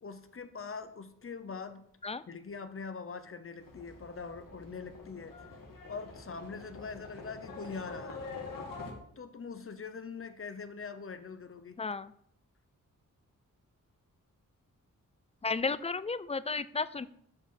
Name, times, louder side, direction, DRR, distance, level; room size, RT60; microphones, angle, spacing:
voice 1, 0.0-1.9 2.3-5.3 5.9-8.2 9.2-11.8, left 5 dB, 45° left, 10 dB, 0.9 m, -43 dB
Livestock farm animals working animals, 3.6-8.9, left 3 dB, 90° left, 1.9 m, -45 dB
voice 2, 11.8-12.1 15.4-17.1, left 4 dB, 20° left, 16 dB, 0.3 m, -33 dB
8.9 x 4.9 x 5.7 m, 0.68 s
wide cardioid pair, 110°, 32 cm